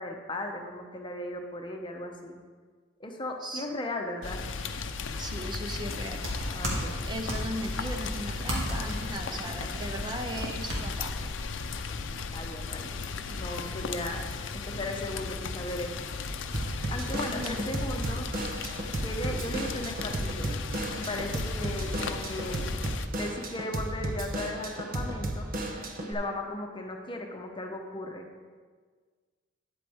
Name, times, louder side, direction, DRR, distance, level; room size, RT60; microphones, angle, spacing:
voice 1, 0.0-2.4 3.0-4.4 6.5-7.1 12.3-16.1 16.6-18.3 19.0-20.6 20.9-22.8 23.2-25.5 26.0-28.3, left 1 dB, 25° left, 3 dB, 0.9 m, -37 dB
Rain, 4.2-23.1, left 4 dB, 80° left, 0.6 m, -36 dB
voice 2, 5.2-6.2 7.1-11.3 17.3-17.7, right 1 dB, 25° right, 4 dB, 0.5 m, -37 dB
sound 1, 6.1-12.1, equal, 80° right, 2.1 m, -36 dB
Drum kit / Drum, 16.5-26.1, right 1 dB, 50° right, 0.9 m, -34 dB
10.0 x 8.2 x 3.5 m, 1.5 s
head